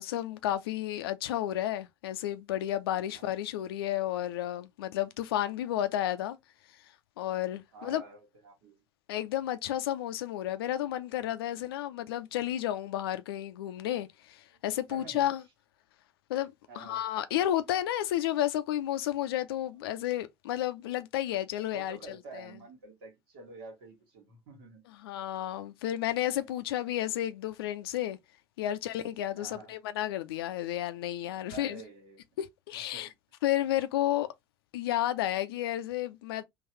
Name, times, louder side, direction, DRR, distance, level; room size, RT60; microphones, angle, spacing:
voice 1, 0.0-6.4 7.2-8.0 9.1-15.4 16.3-22.5 25.0-28.2 28.6-31.8 32.4-33.1 33.4-34.3 34.7-36.4, left 13 dB, 70° left, 0.5 m, -32 dB
voice 2, 7.7-8.8 12.3-12.4 14.5-14.6 14.9-15.2 16.7-17.0 21.7-24.8 26.2-26.5 29.3-29.8 31.4-32.2 32.7-33.1, right 3 dB, 65° right, 1.5 m, -49 dB
3.8 x 2.4 x 2.9 m
figure-of-eight pair, 65°, 13 cm